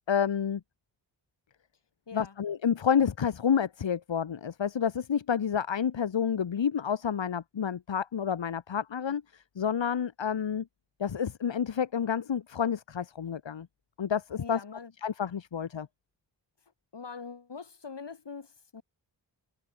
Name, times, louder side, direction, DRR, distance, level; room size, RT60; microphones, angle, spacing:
voice 1, 0.1-0.6 2.1-10.7 11.0-13.7 14.0-14.6 15.0-15.9, left 7 dB, 85° left, 1.6 m, -29 dB
voice 2, 14.4-14.9 16.9-18.8, left 5 dB, 70° left, 6.4 m, -43 dB
wide cardioid pair, 110°, 43 cm